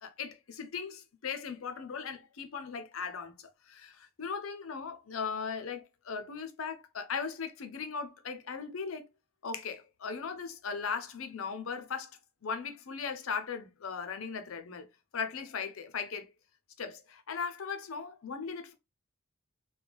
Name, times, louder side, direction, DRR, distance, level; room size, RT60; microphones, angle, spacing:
voice 1, 0.0-9.1 9.4-12.1 12.4-14.9 15.1-16.3 16.8-18.7, left 5 dB, 75° left, 0.6 m, -38 dB
3.3 x 2.2 x 3.4 m
head